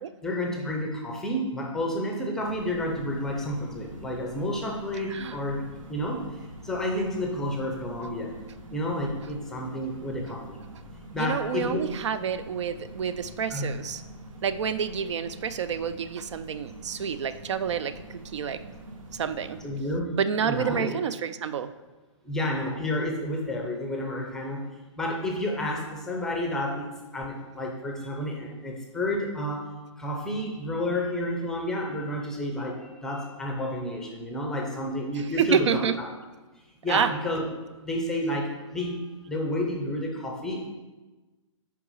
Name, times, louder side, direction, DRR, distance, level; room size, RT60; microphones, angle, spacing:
voice 1, 0.2-5.6 5.9-6.2 6.6-8.3 8.7-10.6 11.1-11.9 13.5-13.7 19.6-20.1 20.4-21.0 22.2-24.6 25.0-35.8 36.8-37.5 37.8-39.0 39.3-40.7, left 1 dB, 5° left, 0 dB, 0.5 m, -30 dB
sound 1, 2.4-19.7, right 1 dB, 90° right, 1.3 m, -45 dB
voice 2, 11.2-14.0 14.4-18.6 19.1-19.6 20.1-21.7 35.4-36.0 36.9-37.1, right 7 dB, 65° right, 12 dB, 0.4 m, -28 dB
5.9 x 4.8 x 5.5 m, 1.2 s
hypercardioid pair, 160°, 17 cm